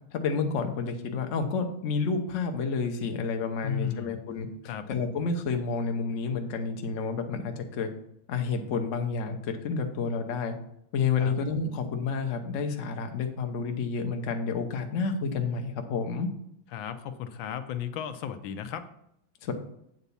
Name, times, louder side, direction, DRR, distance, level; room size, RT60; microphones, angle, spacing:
voice 1, 0.1-4.5 4.9-7.9 8.3-10.5 10.9-16.3 19.4-19.5, left 5 dB, 50° left, 5 dB, 1.0 m, -30 dB
voice 2, 3.6-4.1 4.6-4.8 11.2-11.4 16.7-18.8, left 9 dB, 80° left, 9 dB, 1.4 m, -34 dB
8.1 x 4.0 x 6.9 m, 0.76 s
omnidirectional pair, 2.1 m